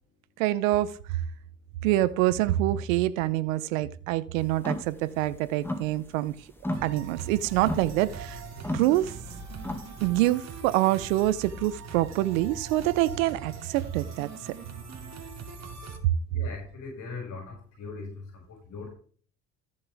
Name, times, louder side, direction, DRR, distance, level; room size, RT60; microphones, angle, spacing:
voice 1, 0.4-0.9 1.8-6.3 6.8-8.4 8.7-9.1 10.0-14.5, right 15 dB, 90° right, 0.8 m, -26 dB
sound 1, 4.5-4.9 5.3-6.3 6.6-10.0, left 1 dB, 5° left, 2.0 m, -35 dB
sound 2, 6.7-16.0, right 4 dB, 45° right, 2.8 m, -42 dB
voice 2, 16.3-18.1 18.5-19.0, left 4 dB, 45° left, 5.9 m, -40 dB
14.5 x 7.5 x 3.5 m
supercardioid pair, 85°, 39 cm